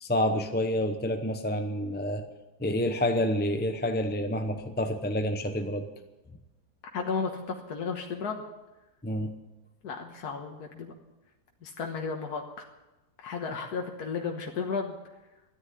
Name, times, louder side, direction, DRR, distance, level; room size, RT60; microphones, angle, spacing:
voice 1, 0.0-2.2 2.6-5.9 9.0-9.3, left 1 dB, 10° left, 6 dB, 0.5 m, -28 dB
voice 2, 6.9-8.4 9.8-10.9 11.6-12.7 13.2-15.0, left 5 dB, 75° left, 2 dB, 1.8 m, -33 dB
13.5 x 10.5 x 9.7 m, 1.0 s
omnidirectional pair, 1.7 m